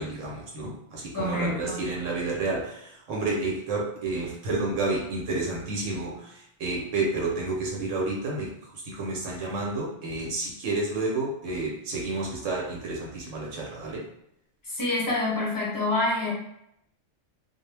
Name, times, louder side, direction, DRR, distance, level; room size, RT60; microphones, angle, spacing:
voice 1, 0.0-6.3 6.6-8.5 8.8-14.1, right 2 dB, 90° right, -3 dB, 1.1 m, -30 dB
voice 2, 1.1-1.8 14.6-16.3, left 2 dB, 20° left, -4 dB, 0.6 m, -27 dB
2.4 x 2.0 x 3.2 m, 0.77 s
omnidirectional pair, 1.3 m